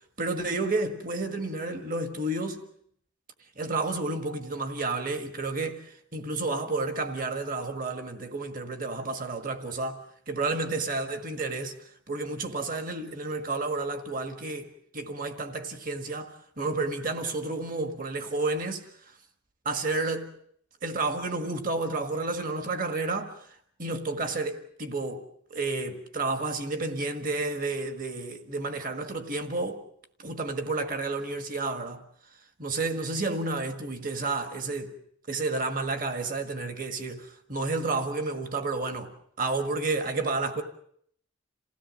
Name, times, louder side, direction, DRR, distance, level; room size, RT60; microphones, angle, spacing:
voice 1, 0.2-2.6 3.6-11.8 12.1-18.9 19.6-20.3 20.8-23.5 23.8-29.8 30.2-32.0 32.6-35.0 35.3-40.6, right 3 dB, 40° right, 1.7 m, -31 dB
28.0 x 17.0 x 7.6 m
head